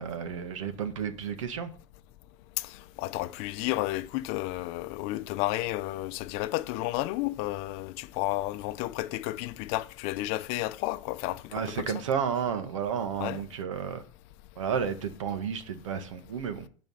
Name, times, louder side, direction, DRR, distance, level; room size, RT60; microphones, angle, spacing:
voice 1, 0.0-1.7 11.5-14.0 14.6-16.7, right 7 dB, 90° right, 1.7 m, -32 dB
voice 2, 3.0-11.4 11.7-11.9 13.2-13.4, left 17 dB, 45° left, 0.6 m, -32 dB
11.5 x 5.2 x 5.6 m
supercardioid pair, 150°, 16 cm